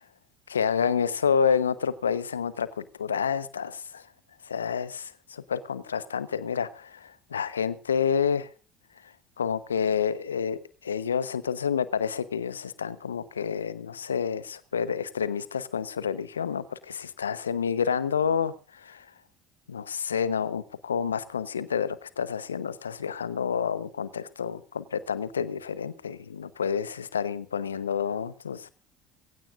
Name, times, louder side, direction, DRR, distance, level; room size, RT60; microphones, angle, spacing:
voice 1, 0.5-4.0 4.4-8.5 9.4-19.0 19.7-28.7, left 7 dB, 85° left, 17 dB, 0.9 m, -29 dB
23.0 x 16.5 x 2.5 m, 0.34 s
figure-of-eight pair, 60°, 0 cm